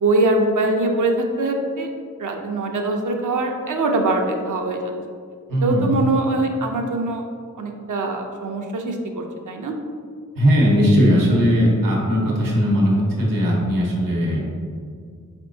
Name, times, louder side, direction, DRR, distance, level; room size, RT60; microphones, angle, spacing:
voice 1, 0.0-1.9 2.2-4.9 5.6-7.2 7.6-9.7, right 2 dB, 65° right, 2 dB, 0.6 m, -22 dB
voice 2, 5.5-5.9 10.4-14.4, equal, 90° right, -3 dB, 0.9 m, -18 dB
4.4 x 3.6 x 2.6 m, 2.1 s
cardioid pair, 50°, 33 cm